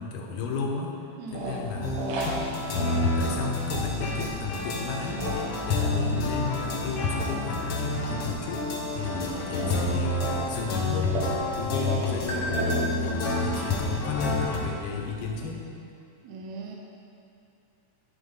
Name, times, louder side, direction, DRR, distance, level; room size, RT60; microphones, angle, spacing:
voice 1, 0.0-1.0 1.3-2.1 2.7-5.4 5.6-11.2 11.5-15.7, left 5 dB, 85° left, 0 dB, 2.4 m, -34 dB
voice 2, 1.2-1.8 16.2-16.8, right 3 dB, 70° right, -1 dB, 1.9 m, -39 dB
sound 1, 1.3-15.5, right 2 dB, 90° right, 2.6 m, -38 dB
sound 2, 1.8-14.6, left 2 dB, 65° left, 1.6 m, -29 dB
sound 3, 11.1-15.3, right 1 dB, 40° right, 0.3 m, -40 dB
11.5 x 4.1 x 5.4 m, 2.5 s
omnidirectional pair, 3.6 m